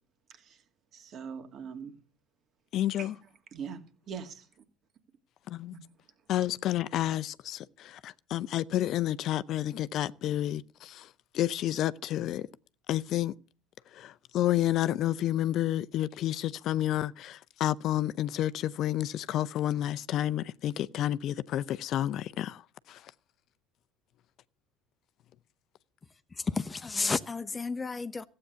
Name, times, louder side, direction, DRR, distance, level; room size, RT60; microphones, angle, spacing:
voice 1, 0.9-2.0 3.0-3.1 3.5-4.5, right 6 dB, 45° right, 2.4 m, -42 dB
voice 2, 2.7-3.1 5.5-5.8 6.3-12.5 12.9-13.3 13.9-22.6 22.9-23.1, left 13 dB, 55° left, 0.6 m, -30 dB
voice 3, 26.4-28.2, left 4 dB, 25° left, 0.9 m, -32 dB
15.0 x 8.8 x 6.8 m
hypercardioid pair, 75°, 0 cm